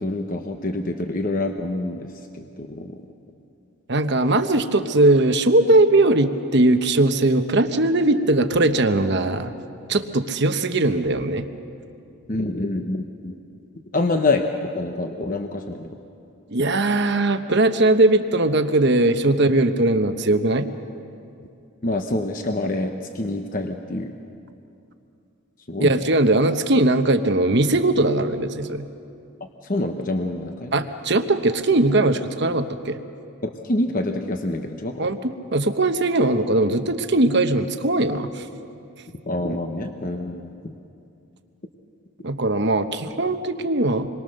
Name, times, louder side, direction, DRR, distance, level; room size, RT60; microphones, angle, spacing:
voice 1, 0.0-3.0 12.3-13.3 13.9-15.9 21.8-24.1 25.7-26.0 29.6-30.8 33.4-35.1 39.2-40.7, left 2 dB, 35° left, 4 dB, 1.0 m, -26 dB
voice 2, 3.9-9.5 9.9-11.5 16.5-20.7 25.8-28.8 30.7-33.0 35.0-38.4 42.2-44.1, right 2 dB, 50° right, 8 dB, 1.0 m, -20 dB
27.5 x 22.5 x 6.5 m, 2.6 s
head